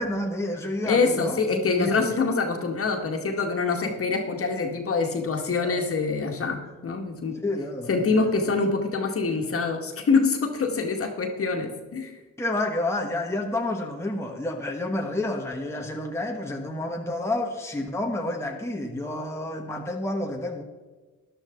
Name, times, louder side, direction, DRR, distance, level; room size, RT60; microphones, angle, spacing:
voice 1, 0.0-2.1 5.6-5.8 7.4-8.1 12.4-20.6, left 1 dB, 10° left, 1 dB, 1.4 m, -29 dB
voice 2, 0.8-7.4 7.9-12.1, left 4 dB, 45° left, 3 dB, 2.0 m, -25 dB
13.0 x 11.0 x 3.9 m, 1.3 s
cardioid pair, 90°, 31 cm